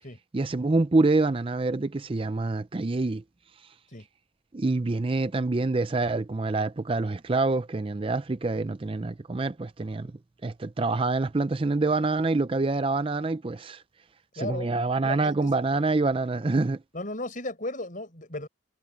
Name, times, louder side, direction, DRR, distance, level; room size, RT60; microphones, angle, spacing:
voice 1, 0.3-3.2 4.5-10.1 10.4-13.8 14.3-16.8, right 3 dB, 25° right, 0.4 m, -26 dB
voice 2, 14.4-14.7 15.0-15.5 16.9-18.5, left 2 dB, 40° left, 5.4 m, -35 dB
head